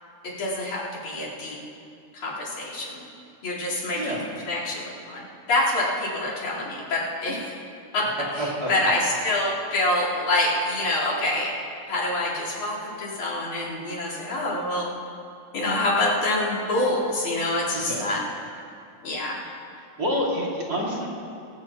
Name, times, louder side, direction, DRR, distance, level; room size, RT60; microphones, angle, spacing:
voice 1, 0.2-1.6 2.1-3.1 3.4-4.2 4.5-5.2 5.5-7.5 7.9-8.1 8.4-11.5 11.9-14.9 15.5-18.2 19.0-19.4, left 1 dB, 70° left, -6 dB, 5.5 m, -26 dB
voice 2, 3.7-4.2 8.4-8.7 17.9-18.1 20.0-21.1, equal, 30° right, -4 dB, 2.8 m, -28 dB
22.0 x 19.0 x 3.0 m, 2.5 s
omnidirectional pair, 3.5 m